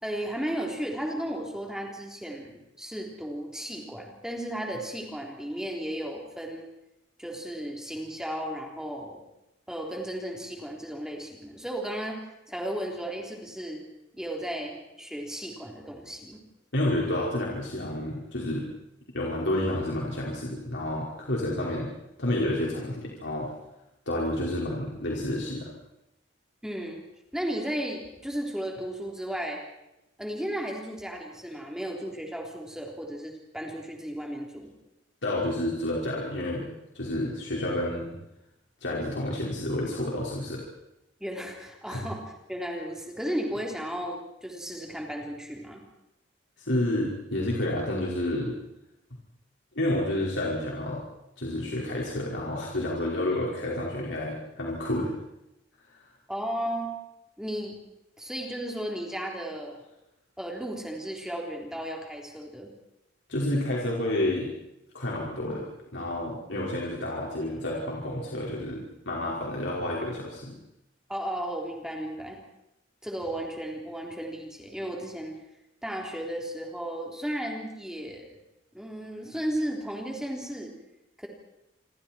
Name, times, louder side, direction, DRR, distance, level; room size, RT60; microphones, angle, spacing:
voice 1, 0.0-6.7 7.2-9.2 9.7-13.8 14.1-16.4 26.6-27.0 27.3-29.6 30.2-34.7 41.2-45.8 56.3-56.9 57.4-57.8 58.2-59.8 60.4-62.7 71.1-72.4 73.0-75.4 75.8-78.4 78.7-80.7 81.2-81.3, right 1 dB, 5° right, 0 dB, 3.7 m, -34 dB
voice 2, 16.7-18.7 19.1-21.9 22.2-23.5 24.1-25.7 35.2-38.1 38.8-40.6 41.9-42.0 46.6-48.5 49.8-51.0 51.4-55.1 63.3-64.5 64.9-65.7 65.9-70.5, left 1 dB, 80° left, -3 dB, 5.2 m, -30 dB
28.5 x 25.0 x 4.6 m, 0.87 s
head